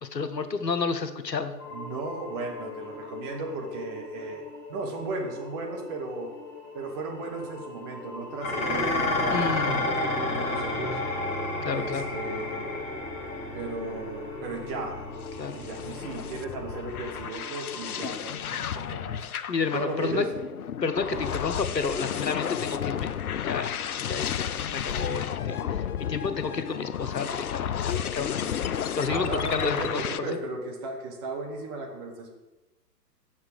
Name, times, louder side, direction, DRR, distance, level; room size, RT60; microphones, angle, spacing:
voice 1, 0.0-1.5 9.3-9.8 11.6-12.1 15.4-15.6 19.5-20.2 20.8-23.1 23.4-23.8 24.1-30.3, left 5 dB, 80° left, 9 dB, 1.0 m, -31 dB
sound 1, 1.6-18.1, left 4 dB, 30° left, 1.8 m, -42 dB
voice 2, 1.7-4.4 4.7-6.3 6.7-11.0 11.7-12.9 13.5-15.0 15.5-19.2 19.7-20.3 21.1-21.3 29.1-32.3, right 3 dB, 15° right, 1 dB, 0.7 m, -36 dB
Dishes pots and pans, 8.4-17.2, left 2 dB, 15° left, 1.3 m, -31 dB
sound 2, 14.9-30.2, left 9 dB, 60° left, 0.6 m, -32 dB
7.2 x 6.1 x 6.5 m, 1.1 s
figure-of-eight pair, 125°, 49 cm